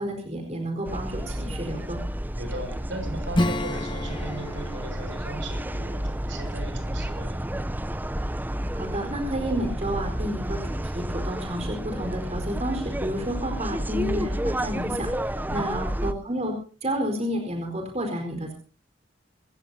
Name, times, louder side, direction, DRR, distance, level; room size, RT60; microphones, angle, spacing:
voice 1, 0.0-2.0 8.7-16.5 16.8-18.5, equal, 35° right, 3 dB, 4.6 m, -31 dB
sound 1, 0.9-16.1, right 1 dB, 10° right, 0.7 m, -31 dB
voice 2, 2.4-7.4 15.5-15.7, right 1 dB, 70° right, 5 dB, 6.4 m, -37 dB
Acoustic guitar / Strum, 3.3-7.6, left 1 dB, 25° left, 1.0 m, -32 dB
26.5 x 15.5 x 2.8 m, 0.38 s
head